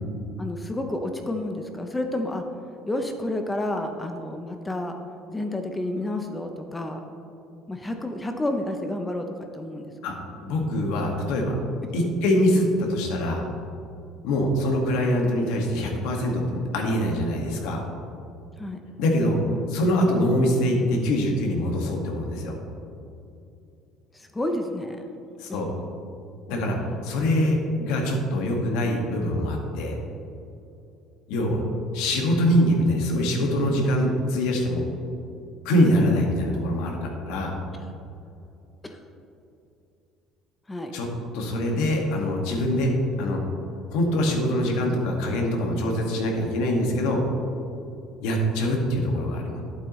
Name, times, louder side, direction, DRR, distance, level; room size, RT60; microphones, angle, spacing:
voice 1, 0.4-2.4 2.9-4.9 5.3-7.0 7.7-9.3 9.5-9.9 18.6-18.8 24.1-25.0 38.8-39.0 40.7-40.9, left 1 dB, 10° left, 5 dB, 0.5 m, -30 dB
voice 2, 10.4-11.6 11.9-13.5 14.2-17.8 19.0-19.4 19.7-22.6 25.4-25.7 26.5-30.0 31.3-31.6 31.9-34.8 35.7-37.6 40.9-41.1 41.3-43.4 43.9-47.2 48.2-49.6, left 1 dB, 80° left, 1 dB, 1.6 m, -24 dB
11.5 x 8.2 x 3.1 m, 2.7 s
cardioid pair, 175°, 0 cm